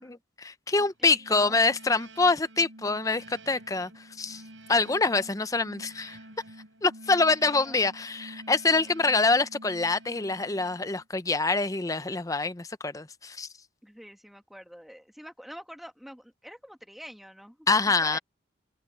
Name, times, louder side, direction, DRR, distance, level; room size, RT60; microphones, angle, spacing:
voice 1, 0.0-4.4 4.7-6.2 6.8-13.5 17.7-18.2, left 3 dB, 20° left, 0.6 m, -25 dB
voice 2, 0.8-1.6 5.1-5.2 7.6-7.8 13.8-18.2, equal, ahead, 2.0 m, -46 dB
sound 1, 1.1-11.1, right 1 dB, 80° right, 5.7 m, -49 dB
head